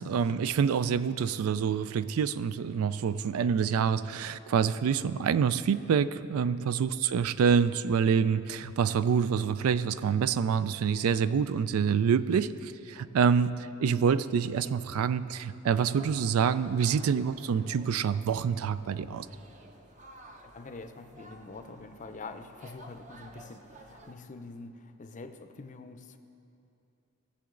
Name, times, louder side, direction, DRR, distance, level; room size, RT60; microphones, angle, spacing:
voice 1, 0.0-19.3, right 6 dB, 90° right, 15 dB, 0.4 m, -27 dB
sound 1, 15.7-24.1, right 1 dB, 35° right, 0.7 m, -52 dB
voice 2, 20.4-26.2, left 3 dB, 35° left, 8 dB, 0.5 m, -45 dB
18.5 x 7.0 x 3.8 m, 2.8 s
head